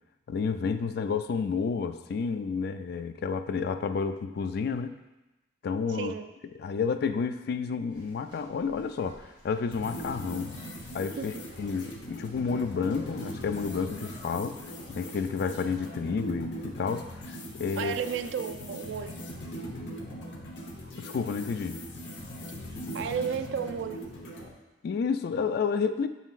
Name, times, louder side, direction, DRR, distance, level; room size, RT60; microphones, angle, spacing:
voice 1, 0.3-4.9 5.6-6.1 6.6-10.5 10.9-11.3 11.6-14.6 14.9-17.9 21.0-21.8 24.8-26.1, left 5 dB, 60° left, 10 dB, 0.3 m, -30 dB
voice 2, 5.9-6.3 11.2-11.4 17.8-19.2 22.9-24.1, right 7 dB, 70° right, 9 dB, 0.3 m, -33 dB
sound 1, 7.9-14.3, equal, 30° right, 2.0 m, -54 dB
sound 2, 9.7-24.5, equal, 75° left, 0.9 m, -40 dB
6.9 x 5.6 x 2.4 m, 1.1 s
head